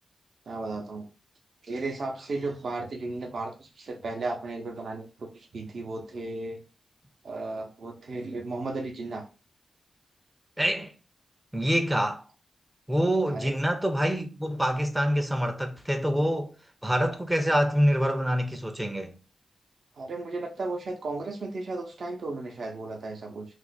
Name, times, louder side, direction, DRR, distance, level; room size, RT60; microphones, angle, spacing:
voice 1, 0.5-1.1 1.6-6.6 7.2-9.2 13.3-13.6 20.0-23.5, right 3 dB, 70° right, 0.6 m, -35 dB
voice 2, 10.6-10.9 11.5-12.2 12.9-16.5 16.8-19.1, equal, 10° right, 0.4 m, -26 dB
2.4 x 2.1 x 3.9 m
cardioid pair, 65°, 0 cm